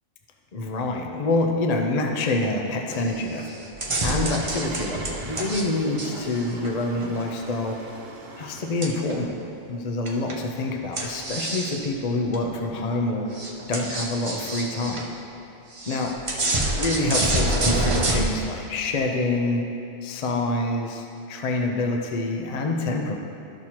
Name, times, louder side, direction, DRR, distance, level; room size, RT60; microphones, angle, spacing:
voice 1, 0.5-3.5 4.0-7.8 8.4-9.3 9.7-13.3 13.7-15.0 15.9-19.6 20.0-23.2, left 2 dB, 45° left, 2 dB, 0.6 m, -26 dB
sound 1, 2.9-3.2 3.5-5.6 6.0-7.2 8.8-9.3 10.0-10.4 10.9-11.8 12.3-12.4 12.9-13.0 13.3-15.1 15.7-18.2, right 2 dB, 30° right, 0.7 m, -27 dB
Engine starting, 4.3-9.0, right 2 dB, 60° right, 1.0 m, -43 dB
13.0 x 6.1 x 2.9 m, 2.7 s
omnidirectional pair, 1.3 m